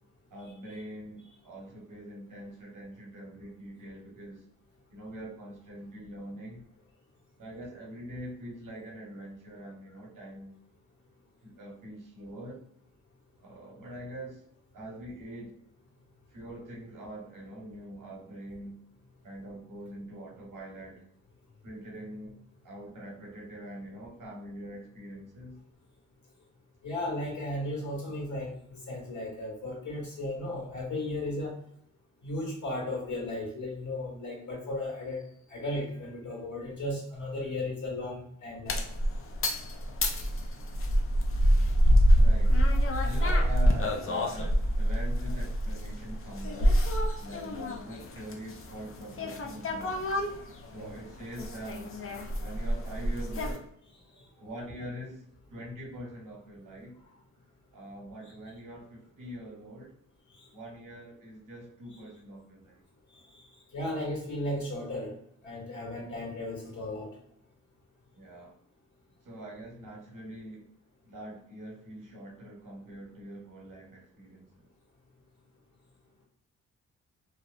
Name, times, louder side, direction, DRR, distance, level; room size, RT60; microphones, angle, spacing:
voice 1, 0.3-4.4 4.9-6.6 7.4-10.5 11.4-12.7 13.4-14.4 14.7-15.6 16.3-18.8 19.2-21.0 21.6-22.3 22.6-25.6 42.1-42.6 43.0-46.8 47.2-50.1 50.7-51.9 52.4-53.7 54.4-57.0 57.7-60.0 60.5-62.8 68.2-68.6 69.2-70.7 71.0-74.7, right 1 dB, 65° right, -2 dB, 1.0 m, -44 dB
voice 2, 26.8-31.5 32.2-35.2 35.5-38.9 50.7-50.9 60.4-60.5 63.3-63.4 63.7-65.1 65.4-67.1, left 1 dB, 55° left, -3 dB, 1.4 m, -35 dB
sound 1, 38.7-53.6, equal, 40° left, 0.5 m, -26 dB
2.6 x 2.0 x 2.4 m, 0.70 s
cardioid pair, 55°, 34 cm